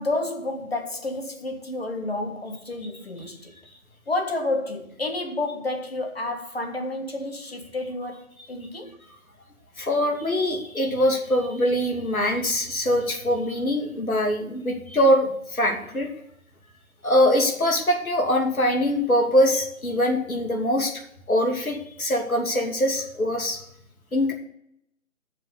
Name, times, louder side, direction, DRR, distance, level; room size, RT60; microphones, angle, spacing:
voice 1, 0.0-3.6 4.1-9.0, left 2 dB, 45° left, 1.7 m, -30 dB
voice 2, 9.8-16.1 17.0-20.9 21.3-23.6 24.1-24.3, equal, 80° left, 2.7 m, -23 dB
7.7 x 6.7 x 8.0 m
figure-of-eight pair, 175°, 42 cm